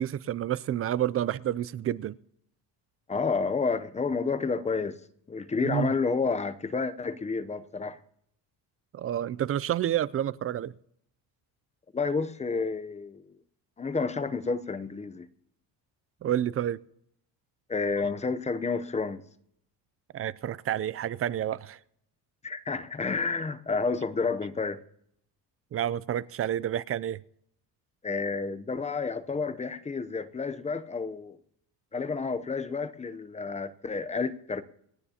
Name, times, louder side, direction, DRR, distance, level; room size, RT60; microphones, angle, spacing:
voice 1, 0.0-2.2 5.6-5.9 8.9-10.7 16.2-16.8 20.1-21.8 25.7-27.2, right 11 dB, 35° right, 0.4 m, -29 dB
voice 2, 3.1-5.0 5.3-8.0 11.9-13.4 13.8-15.3 17.7-19.2 22.4-24.8 28.0-31.4 31.9-34.6, left 4 dB, 15° left, 0.7 m, -30 dB
28.5 x 9.5 x 2.9 m
cardioid pair, 130°, 40 cm